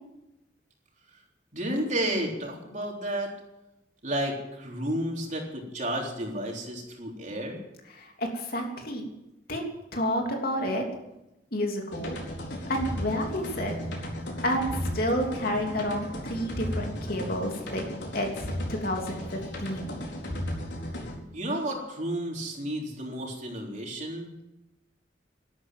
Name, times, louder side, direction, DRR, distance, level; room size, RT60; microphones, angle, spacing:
voice 1, 1.5-3.4 4.0-7.6 21.3-24.3, right 1 dB, 45° right, 0 dB, 3.7 m, -32 dB
voice 2, 8.0-9.0 9.5-9.6 9.9-10.8 11.5-12.2 12.7-13.7 14.4-14.7 14.9-17.8 18.1-19.9, equal, 55° left, 2 dB, 3.2 m, -30 dB
sound 1, 11.9-21.2, equal, 70° left, 4.4 m, -35 dB
12.5 x 12.5 x 9.2 m, 0.92 s
head